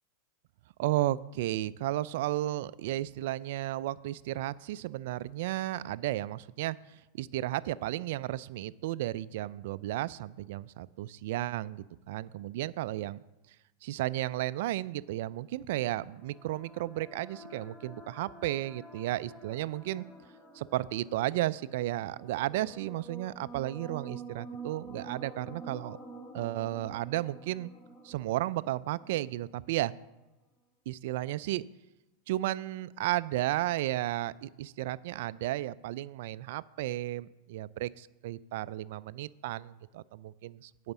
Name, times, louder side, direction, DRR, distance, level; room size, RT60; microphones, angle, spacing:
voice 1, 0.8-6.8 7.1-13.2 13.8-20.0 20.5-26.0 26.3-27.7 28.0-29.9 30.9-31.6 32.3-40.9, right 15 dB, 65° right, 18 dB, 0.3 m, -33 dB
sound 1, 15.6-29.7, right 3 dB, 10° left, 1.3 m, -49 dB
9.4 x 5.0 x 7.1 m, 1.0 s
hypercardioid pair, 105°, 0 cm